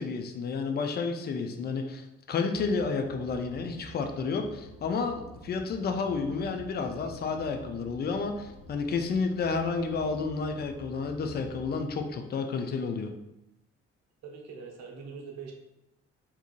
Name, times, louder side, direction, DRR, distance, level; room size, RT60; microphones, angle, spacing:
voice 1, 0.0-13.1, left 4 dB, 30° left, 5 dB, 0.4 m, -31 dB
sound 1, 2.5-12.0, equal, 70° left, 0.9 m, -49 dB
voice 2, 14.2-15.5, right 5 dB, 50° right, 1 dB, 0.7 m, -43 dB
3.5 x 2.8 x 2.3 m, 0.88 s
figure-of-eight pair, 40°, 35 cm